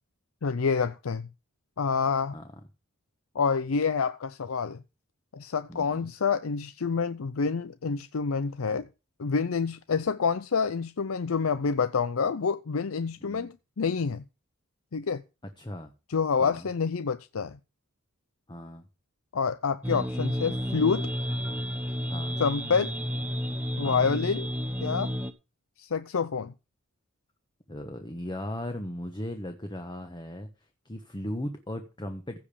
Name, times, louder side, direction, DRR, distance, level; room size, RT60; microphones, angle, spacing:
voice 1, 0.4-1.3 1.8-2.4 3.3-4.8 5.3-8.9 9.2-14.2 14.9-15.2 16.1-17.6 19.3-21.1 22.4-23.0 23.8-24.5 24.8-25.1 25.8-26.5, left 5 dB, 85° left, 0.6 m, -27 dB
voice 2, 5.7-6.1 13.2-13.5 15.6-15.9 16.4-16.7 18.5-18.8 22.1-22.4 23.8-24.2 27.7-30.5 30.8-32.4, left 1 dB, 20° left, 1.2 m, -37 dB
sound 1, 19.8-25.3, equal, 10° right, 1.0 m, -31 dB
15.5 x 5.3 x 6.8 m
head